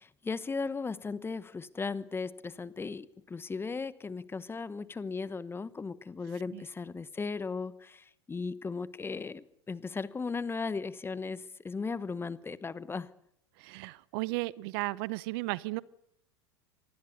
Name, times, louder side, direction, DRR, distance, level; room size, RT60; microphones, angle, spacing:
voice 1, 0.0-13.1, left 4 dB, 15° left, 17 dB, 1.1 m, -37 dB
voice 2, 13.6-15.8, right 22 dB, 60° right, 21 dB, 0.8 m, -34 dB
25.5 x 19.5 x 6.8 m, 0.75 s
hypercardioid pair, 85°, 14 cm